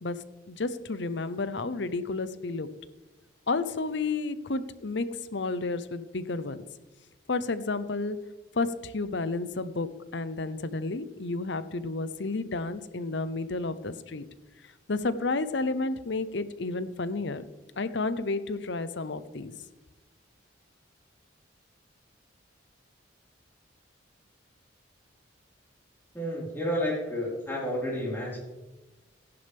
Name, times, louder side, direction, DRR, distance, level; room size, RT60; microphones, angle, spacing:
voice 1, 0.0-2.7 3.5-6.6 7.3-8.2 8.5-14.2 14.9-17.4 17.8-19.5, left 3 dB, 65° left, 13 dB, 0.8 m, -31 dB
voice 2, 26.1-28.4, equal, 10° left, -5 dB, 4.5 m, -31 dB
15.5 x 11.0 x 3.5 m, 1.1 s
head